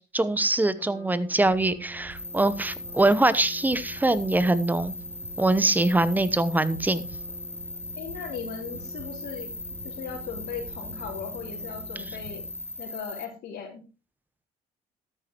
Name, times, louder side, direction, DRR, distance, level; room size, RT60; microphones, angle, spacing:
voice 1, 0.1-4.9 5.4-7.0, right 2 dB, 10° right, 15 dB, 0.9 m, -23 dB
Trumpet, 0.7-12.9, right 2 dB, 30° right, 7.2 m, -48 dB
sound 1, 1.3-12.8, right 2 dB, 50° right, 3.1 m, -48 dB
sound 2, 2.1-13.2, left 2 dB, 10° left, 1.3 m, -39 dB
voice 2, 8.0-9.5 9.8-12.4 12.8-13.8, left 7 dB, 75° left, 0 dB, 3.4 m, -38 dB
13.0 x 9.5 x 3.0 m, 0.31 s
cardioid pair, 110°, 17 cm